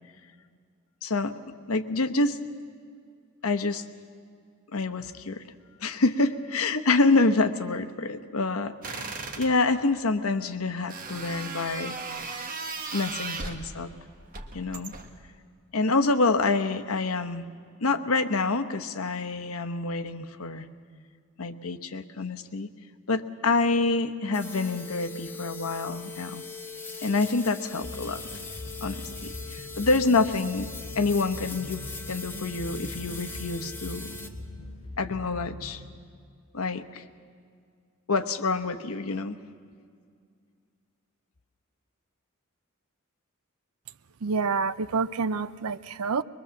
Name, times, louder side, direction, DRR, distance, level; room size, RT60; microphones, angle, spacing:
voice 1, 1.0-1.4 1.7-2.4 3.4-3.8 4.7-5.4 5.8-12.0 12.9-13.9 14.5-14.9 15.7-17.5 17.8-20.7 21.4-22.7 23.1-26.4 27.0-28.2 28.8-30.7 30.9-34.1 35.0-35.8 36.5-37.0 38.1-39.4, left 3 dB, 80° left, 8 dB, 1.0 m, -27 dB
sound 1, 8.8-9.5 10.9-13.7 14.3-15.2, right 4 dB, 40° right, 1.5 m, -36 dB
sound 2, 24.3-34.3, left 4 dB, 10° left, 1.2 m, -41 dB
sound 3, 27.8-35.9, left 1 dB, 30° left, 4.8 m, -41 dB
voice 2, 44.2-46.2, right 5 dB, 85° right, 14 dB, 0.5 m, -28 dB
22.0 x 22.0 x 7.2 m, 2.2 s
head